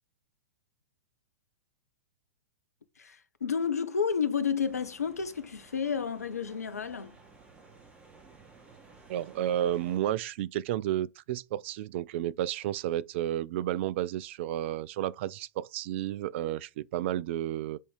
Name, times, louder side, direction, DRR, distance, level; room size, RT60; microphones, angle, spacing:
voice 1, 3.0-7.2, left 6 dB, 80° left, 1.0 m, -31 dB
sound 1, 4.6-10.0, right 4 dB, 15° right, 2.5 m, -56 dB
voice 2, 9.1-17.8, right 12 dB, 50° right, 0.5 m, -32 dB
8.2 x 4.3 x 5.1 m
figure-of-eight pair, 105°, 8 cm